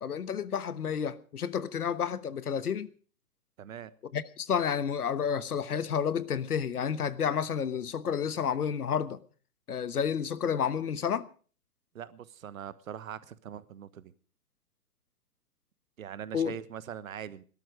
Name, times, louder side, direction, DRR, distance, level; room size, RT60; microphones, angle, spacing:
voice 1, 0.0-2.9 4.1-9.2 9.7-11.3 16.3-16.5, left 7 dB, 70° left, 1.3 m, -30 dB
voice 2, 3.6-3.9 11.9-14.1 16.0-17.4, right 9 dB, 60° right, 1.3 m, -42 dB
18.5 x 12.5 x 5.0 m
figure-of-eight pair, 125°, 47 cm